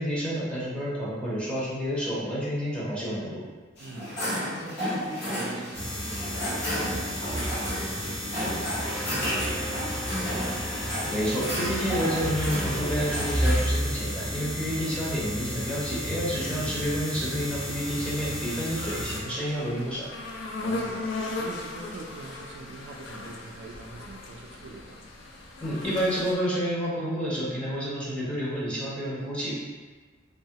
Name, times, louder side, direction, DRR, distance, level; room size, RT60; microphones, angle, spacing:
voice 1, 0.0-3.4 11.0-20.1 25.6-29.5, equal, 5° left, -8 dB, 0.7 m, -29 dB
sound 1, 3.8-13.6, equal, 60° left, 1.2 m, -32 dB
voice 2, 3.8-6.7 6.9-10.5 16.5-16.8 18.8-19.1 20.6-25.0, right 2 dB, 60° right, 0 dB, 0.4 m, -43 dB
sound 2, 5.7-19.2, equal, 30° left, 0.9 m, -32 dB
sound 3, 17.6-26.3, left 2 dB, 75° left, 0.4 m, -37 dB
2.8 x 2.3 x 2.8 m, 1.4 s
head